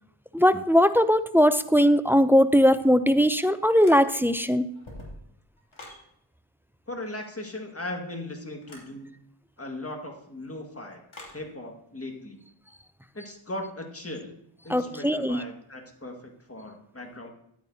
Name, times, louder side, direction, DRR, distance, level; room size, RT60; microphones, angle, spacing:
voice 1, 0.3-4.7 14.7-15.4, equal, 5° right, 12 dB, 0.4 m, -20 dB
sound 1, 3.8-4.4 4.7-6.0 8.6-8.9 11.1-11.4, left 1 dB, 75° left, 2.6 m, -45 dB
voice 2, 6.9-9.2 9.6-11.0 11.3-12.4 13.1-14.4 14.6-17.3, left 1 dB, 30° left, 2 dB, 1.8 m, -38 dB
11.0 x 9.1 x 2.7 m, 0.74 s
wide cardioid pair, 55°, 49 cm